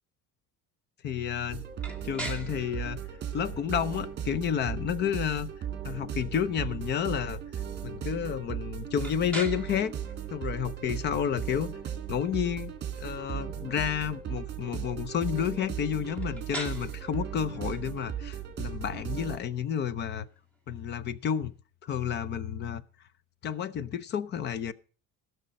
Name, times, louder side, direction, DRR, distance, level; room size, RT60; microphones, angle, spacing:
voice 1, 1.0-1.6 2.0-3.0 3.3-5.5 5.8-7.4 7.8-9.9 10.3-11.8 12.1-12.7 13.0-20.3 20.7-21.5 21.8-22.8 23.4-24.7, left 8 dB, 30° left, 0.6 m, -30 dB
sound 1, 1.5-19.4, right 9 dB, 30° right, 2.0 m, -37 dB
sound 2, 1.8-21.6, right 2 dB, 5° left, 1.7 m, -47 dB
16.5 x 6.6 x 5.2 m
cardioid pair, 175°, 33 cm